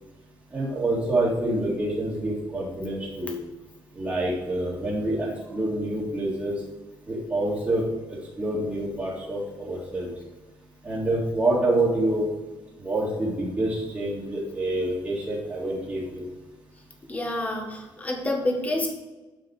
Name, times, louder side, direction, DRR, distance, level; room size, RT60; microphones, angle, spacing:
voice 1, 0.5-3.4 3.9-6.6 7.1-10.1 10.8-12.3 12.8-16.3, right 1 dB, 20° right, -10 dB, 2.4 m, -27 dB
voice 2, 17.1-18.9, left 1 dB, 15° left, 1 dB, 1.7 m, -28 dB
8.5 x 5.7 x 4.9 m, 1.2 s
cardioid pair, 135°, 8 cm